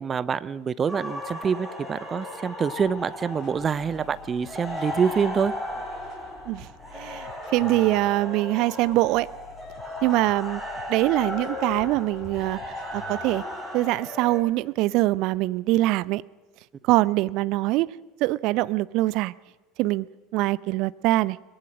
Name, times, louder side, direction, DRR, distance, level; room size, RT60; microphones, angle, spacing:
voice 1, 0.0-5.5, right 6 dB, 30° right, 0.8 m, -26 dB
sound 1, 0.9-14.4, left 1 dB, 5° right, 7.7 m, -36 dB
sound 2, 2.8-13.6, left 8 dB, 40° left, 6.5 m, -50 dB
voice 2, 6.9-9.3 10.0-10.6 10.9-12.6 12.9-13.4 13.7-16.2 16.8-17.9 18.2-19.3 19.8-20.1 20.3-21.4, right 18 dB, 55° right, 0.7 m, -23 dB
22.5 x 21.5 x 6.4 m
figure-of-eight pair, 70°, 0 cm